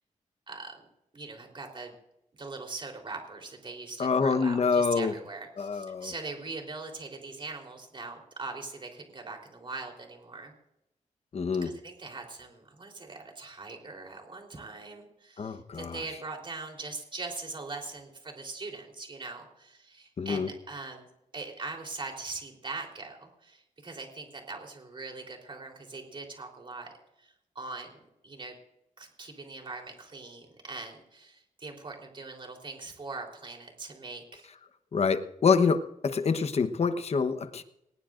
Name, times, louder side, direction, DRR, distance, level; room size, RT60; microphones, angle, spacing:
voice 1, 0.5-0.9 1.1-1.9 2.4-10.5 11.6-21.0 21.3-26.9 27.2-28.5 29.0-34.5, right 3 dB, 35° right, 2 dB, 3.7 m, -41 dB
voice 2, 4.0-5.1 5.6-6.1 11.3-11.7 15.4-16.0 20.2-20.5 34.9-37.6, left 5 dB, 50° left, 10 dB, 1.1 m, -26 dB
20.5 x 19.5 x 2.6 m, 0.85 s
wide cardioid pair, 140°, 14 cm